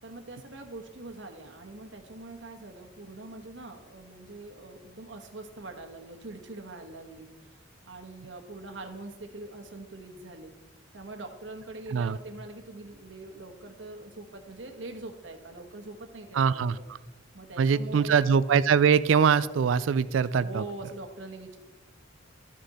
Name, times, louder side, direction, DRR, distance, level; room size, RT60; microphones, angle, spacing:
voice 1, 0.0-10.5 10.9-16.9 17.3-18.3 20.4-21.6, right 2 dB, 70° right, 5 dB, 1.3 m, -43 dB
voice 2, 16.3-16.8 17.6-20.6, right 6 dB, 85° right, 17 dB, 0.4 m, -23 dB
13.0 x 6.4 x 4.2 m, 1.2 s
head